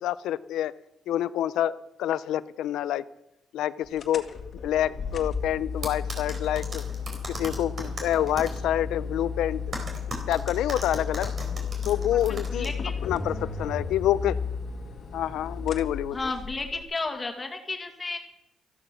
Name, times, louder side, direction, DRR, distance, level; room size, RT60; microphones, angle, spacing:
voice 1, 0.0-0.7 1.1-3.0 3.5-4.2 4.6-6.8 7.3-9.6 10.1-11.3 11.9-12.7 13.0-14.4 15.1-16.2, left 12 dB, 85° left, 17 dB, 0.6 m, -27 dB
sound 1, 4.0-16.8, left 5 dB, 50° left, 1.7 m, -34 dB
sound 2, 5.8-8.6 9.7-12.7, right 2 dB, 40° right, 4.1 m, -37 dB
voice 2, 12.3-13.0 16.1-18.2, left 3 dB, 25° left, 3 dB, 2.2 m, -33 dB
14.0 x 12.5 x 6.2 m, 0.85 s
cardioid pair, 90°, 0 cm